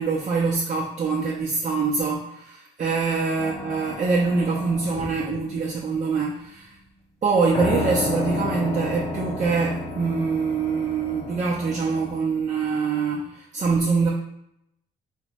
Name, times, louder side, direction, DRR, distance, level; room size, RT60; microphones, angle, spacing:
voice 1, 0.0-6.8 7.2-14.1, right 4 dB, 35° right, -4 dB, 0.5 m, -24 dB
sound 1, 3.4-6.0 7.5-12.2, left 2 dB, 30° left, 0.6 m, -32 dB
3.0 x 2.1 x 2.8 m, 0.78 s
cardioid pair, 90°, 20 cm